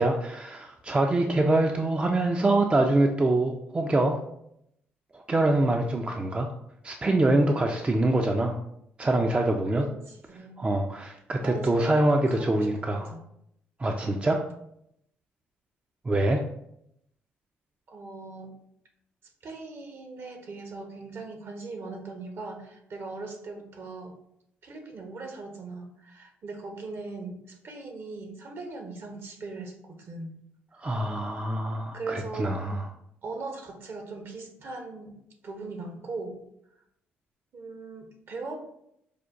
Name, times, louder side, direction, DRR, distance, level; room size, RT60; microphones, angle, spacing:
voice 1, 0.0-4.2 5.1-6.5 6.8-8.6 9.0-9.8 10.6-13.1 13.8-14.4 16.1-16.4 30.8-32.8, right 2 dB, 25° right, 3 dB, 0.4 m, -24 dB
voice 2, 9.7-10.7 11.4-13.2 14.0-14.4 17.9-18.5 19.4-24.1 24.6-30.3 31.9-32.6 33.2-35.1 35.4-36.4 37.5-38.6, right 3 dB, 55° right, 4 dB, 0.8 m, -39 dB
4.9 x 2.2 x 2.5 m, 0.75 s
supercardioid pair, 60°, 5 cm